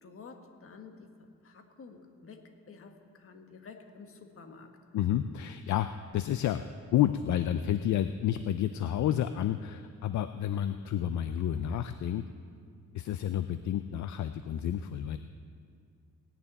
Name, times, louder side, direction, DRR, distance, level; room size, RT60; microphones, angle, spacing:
voice 1, 0.0-1.1 1.4-4.7, left 4 dB, 45° left, 4 dB, 1.5 m, -50 dB
voice 2, 4.9-5.9 6.1-6.6 6.9-12.2 12.9-15.2, left 11 dB, 65° left, 10 dB, 0.5 m, -30 dB
18.0 x 7.0 x 9.0 m, 2.3 s
cardioid pair, 160°, 31 cm